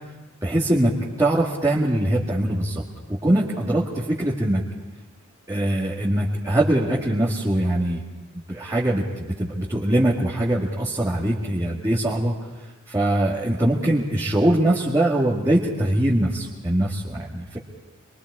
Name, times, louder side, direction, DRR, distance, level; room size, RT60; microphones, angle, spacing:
voice 1, 0.4-2.8 3.1-4.6 5.5-8.0 8.5-12.3 12.9-17.6, right 1 dB, 15° right, -6 dB, 2.0 m, -22 dB
25.5 x 22.5 x 4.8 m, 1.2 s
head